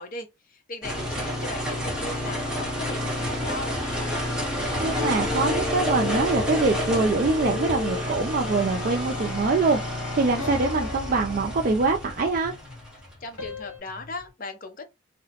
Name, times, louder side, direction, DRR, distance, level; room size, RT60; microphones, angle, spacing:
voice 1, 0.0-3.8 13.2-14.8, left 2 dB, 40° left, 0.5 m, -38 dB
sound 1, 0.8-14.2, equal, 5° right, 0.8 m, -30 dB
sound 2, 3.7-11.2, left 6 dB, 90° left, 0.6 m, -37 dB
voice 2, 4.8-12.5, right 3 dB, 45° right, 0.3 m, -24 dB
sound 3, 8.2-9.3 10.4-12.3 13.4-13.8, left 4 dB, 75° left, 1.1 m, -40 dB
2.8 x 2.0 x 2.8 m
head